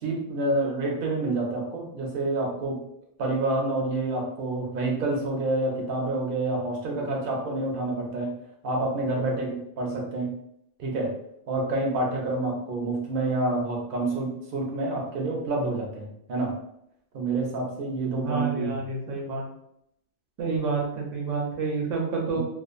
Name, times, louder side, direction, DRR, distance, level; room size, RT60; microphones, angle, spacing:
voice 1, 0.0-2.8 3.2-8.3 8.6-10.3 10.8-11.1 11.5-16.5 17.1-18.8 22.3-22.4, right 2 dB, 55° right, -1 dB, 0.8 m, -28 dB
voice 2, 18.2-19.5 20.4-22.4, right 4 dB, 80° right, -1 dB, 1.0 m, -29 dB
2.5 x 2.4 x 2.4 m, 0.75 s
omnidirectional pair, 1.3 m